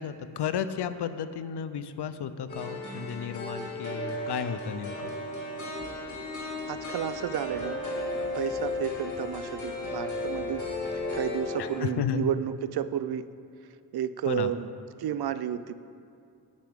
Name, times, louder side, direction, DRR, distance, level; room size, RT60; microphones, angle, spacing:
voice 1, 0.0-5.1 11.6-12.3 14.3-14.5, left 8 dB, 75° left, 12 dB, 0.6 m, -33 dB
sound 1, 2.5-11.8, left 2 dB, 45° left, 2.4 m, -34 dB
sound 2, 5.5-11.2, left 1 dB, 5° right, 2.4 m, -53 dB
voice 2, 6.3-7.8 8.3-10.7 11.1-13.3 13.9-14.7 15.0-15.7, right 10 dB, 65° right, 14 dB, 0.5 m, -32 dB
17.5 x 6.0 x 3.6 m, 2.5 s
cardioid pair, 55°, 41 cm